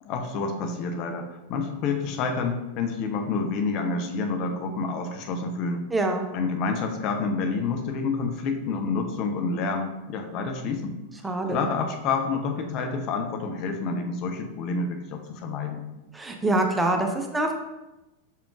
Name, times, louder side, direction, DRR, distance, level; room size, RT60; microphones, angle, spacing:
voice 1, 0.0-5.8 6.3-11.0 11.5-15.8, left 4 dB, 40° left, 5 dB, 0.6 m, -28 dB
voice 2, 5.9-6.2 11.2-11.7 16.1-17.5, right 2 dB, 10° right, 3 dB, 0.5 m, -25 dB
5.7 x 3.5 x 2.4 m, 1.0 s
figure-of-eight pair, 90°, 0 cm